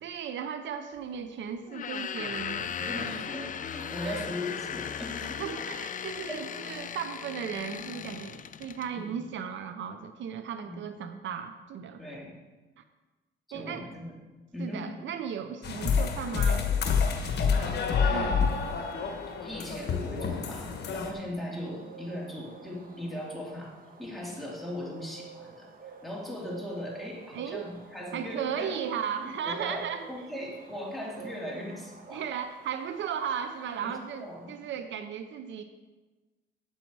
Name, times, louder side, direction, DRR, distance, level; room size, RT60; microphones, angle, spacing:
voice 1, 0.0-3.1 4.0-4.2 5.4-12.0 13.5-13.8 14.6-16.7 18.1-18.5 27.3-27.7 28.1-30.1 32.1-35.6, right 8 dB, 70° right, 9 dB, 0.6 m, -36 dB
sound 1, 1.7-8.9, left 8 dB, 40° left, 0.5 m, -37 dB
voice 2, 2.9-5.4 6.3-6.4 8.9-9.1 10.6-10.8 12.0-12.3 13.5-14.2 14.5-14.9 17.3-18.6 19.3-28.8 29.2-32.2 33.8-34.5, left 1 dB, ahead, -4 dB, 2.8 m, -39 dB
sound 2, 15.6-21.1, left 6 dB, 55° left, 1.2 m, -28 dB
sound 3, 20.0-34.6, right 5 dB, 45° right, 1.3 m, -50 dB
8.5 x 8.0 x 4.7 m, 1.2 s
cardioid pair, 90°, 20 cm